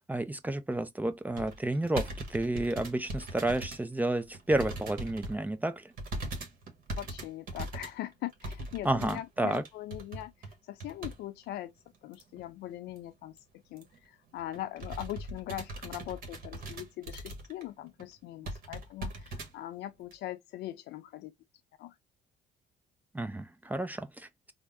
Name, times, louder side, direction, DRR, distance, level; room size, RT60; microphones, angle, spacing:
voice 1, 0.1-5.9 8.8-9.6 23.1-24.5, right 1 dB, 10° right, 0.4 m, -31 dB
sound 1, 1.4-3.8 4.2-5.4 6.0-11.2 11.5-11.6 12.1-12.5 12.9-13.0 13.2-13.4 13.8-14.0 14.4-17.7 18.0-18.1 18.4-19.5 20.1-20.2, right 2 dB, 60° right, 1.4 m, -40 dB
voice 2, 7.0-10.3 10.7-11.7 12.0-13.4 13.7-21.3 21.8-21.9, left 13 dB, 80° left, 0.6 m, -41 dB
3.5 x 2.1 x 3.4 m
cardioid pair, 110°, 17 cm